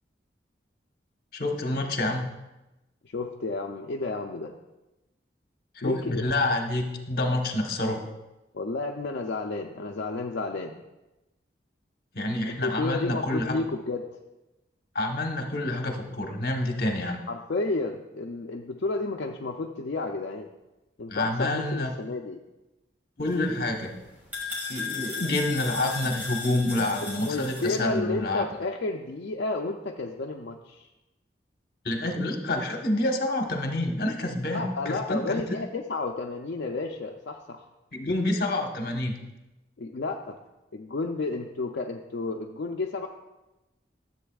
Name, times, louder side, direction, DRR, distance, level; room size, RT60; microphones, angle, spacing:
voice 1, 1.3-2.3 5.7-8.1 12.1-13.6 14.9-17.2 21.1-21.9 23.2-23.9 24.7-28.5 31.8-35.4 37.9-39.2, left 1 dB, 55° left, 2 dB, 1.1 m, -28 dB
voice 2, 3.0-4.5 5.8-6.3 8.5-10.8 12.4-14.1 17.3-20.5 21.0-22.4 27.0-30.9 34.5-37.6 39.8-40.4 40.7-43.1, left 3 dB, 70° left, 2 dB, 0.5 m, -31 dB
sound 1, 23.2-27.8, left 4 dB, 10° right, 2.1 m, -36 dB
13.5 x 7.6 x 2.4 m, 1.0 s
head